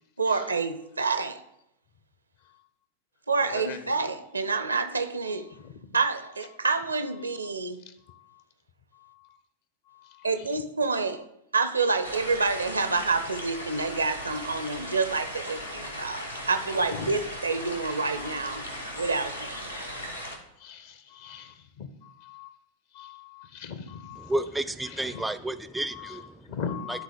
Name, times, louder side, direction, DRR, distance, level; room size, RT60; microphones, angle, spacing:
voice 1, 0.2-1.4 3.3-5.5 5.9-7.8 10.2-11.3 11.5-18.6 19.0-19.8, right 4 dB, 80° right, 0.6 m, -28 dB
voice 2, 9.9-10.3 13.8-13.9 16.9-17.1 20.6-22.5 22.9-24.3 26.0-26.1 26.5-27.0, left 6 dB, 50° left, 0.8 m, -39 dB
sound 1, 12.0-20.4, equal, 85° left, 1.1 m, -38 dB
voice 3, 24.2-26.6 26.9-27.0, right 1 dB, 5° right, 0.4 m, -32 dB
11.5 x 3.8 x 5.0 m
figure-of-eight pair, 90°, 0 cm